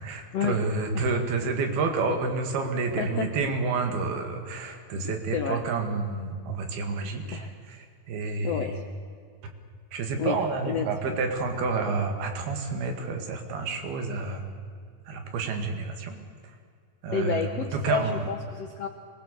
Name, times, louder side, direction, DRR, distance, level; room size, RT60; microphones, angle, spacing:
voice 1, 0.0-8.8 9.9-14.4 15.1-16.2 17.0-18.3, right 4 dB, 90° right, 5 dB, 4.0 m, -29 dB
voice 2, 3.0-3.3 5.3-5.6 7.3-7.5 8.4-8.8 10.2-11.2 17.1-18.9, left 6 dB, 75° left, 5 dB, 1.5 m, -30 dB
23.5 x 19.5 x 6.8 m, 2.2 s
omnidirectional pair, 4.3 m